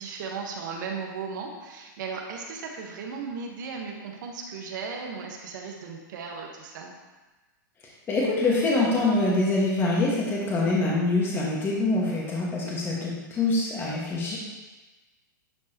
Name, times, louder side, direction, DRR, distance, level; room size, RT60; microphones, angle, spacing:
voice 1, 0.0-6.9 12.6-12.7, right 5 dB, 70° right, 1 dB, 1.4 m, -36 dB
voice 2, 8.1-14.4, left 2 dB, 20° left, -4 dB, 1.8 m, -25 dB
10.5 x 4.7 x 3.0 m, 1.2 s
hypercardioid pair, 130°, 11 cm